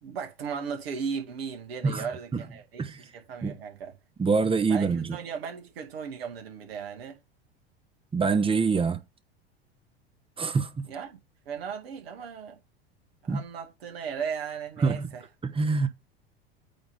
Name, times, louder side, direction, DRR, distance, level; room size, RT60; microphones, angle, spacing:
voice 1, 0.0-3.9 4.7-7.2 10.9-11.2 11.5-12.6 13.2-15.2, right 6 dB, 70° right, 2.4 m, -36 dB
voice 2, 4.2-5.2 8.1-9.0 10.4-10.8 13.3-13.4 14.8-15.1 15.4-15.9, right 4 dB, 15° right, 1.0 m, -25 dB
8.7 x 3.6 x 5.7 m
figure-of-eight pair, 80°, 31 cm